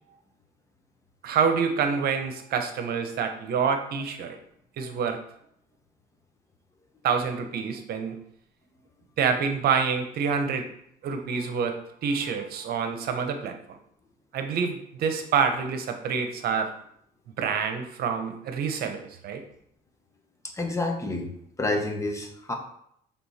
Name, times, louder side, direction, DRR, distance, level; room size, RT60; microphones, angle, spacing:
voice 1, 1.2-4.4 4.8-5.2 7.0-8.2 9.2-10.6 11.0-13.8 14.3-16.7 17.4-19.4, right 6 dB, 65° right, 6 dB, 0.9 m, -27 dB
voice 2, 20.5-21.3 21.6-22.5, left 2 dB, 20° left, 3 dB, 1.1 m, -28 dB
6.8 x 3.6 x 4.2 m, 0.70 s
cardioid pair, 110°, 17 cm